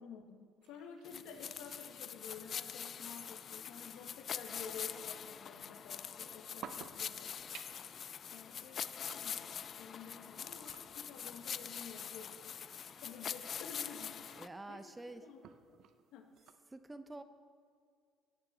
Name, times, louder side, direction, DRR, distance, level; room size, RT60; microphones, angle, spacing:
voice 1, 0.0-7.3 7.6-7.7 8.3-12.6 13.0-14.2 14.7-15.4 15.7-15.8 16.1-16.3, left 6 dB, 75° left, 6 dB, 1.1 m, -51 dB
sound 1, 0.6-16.5, right 8 dB, 65° right, 0.6 m, -59 dB
sound 2, 1.0-14.5, left 8 dB, 55° left, 0.4 m, -44 dB
sound 3, 6.7-11.0, left 1 dB, 15° left, 2.2 m, -72 dB
voice 2, 10.3-10.6 14.4-15.2 16.7-17.2, right 2 dB, 20° right, 10 dB, 0.8 m, -48 dB
14.5 x 9.2 x 4.0 m, 2.2 s
hypercardioid pair, 60°, 0 cm